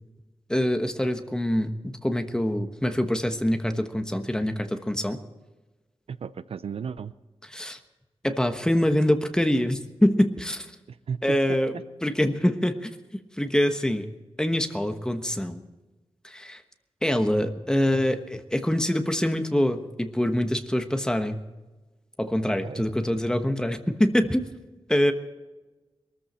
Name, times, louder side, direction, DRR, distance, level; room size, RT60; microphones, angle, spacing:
voice 1, 0.5-5.2 7.5-7.8 8.2-10.7 11.2-13.0 13.4-14.1 14.4-15.6 16.2-16.6 17.0-21.4 22.2-24.5 24.9-25.1, equal, 5° left, 7 dB, 1.2 m, -25 dB
voice 2, 6.1-7.1 10.9-11.8 22.5-22.8, right 6 dB, 80° right, 14 dB, 0.6 m, -35 dB
22.0 x 14.0 x 4.3 m, 1.1 s
wide cardioid pair, 135°, 10 cm